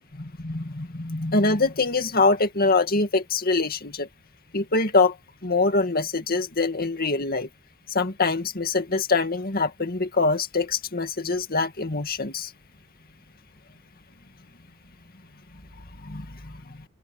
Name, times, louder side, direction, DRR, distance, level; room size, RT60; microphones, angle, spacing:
voice 1, 0.2-4.1 4.5-5.2 5.4-7.5 7.9-12.5 16.0-16.8, left 3 dB, 45° left, 2.1 m, -24 dB
open air
head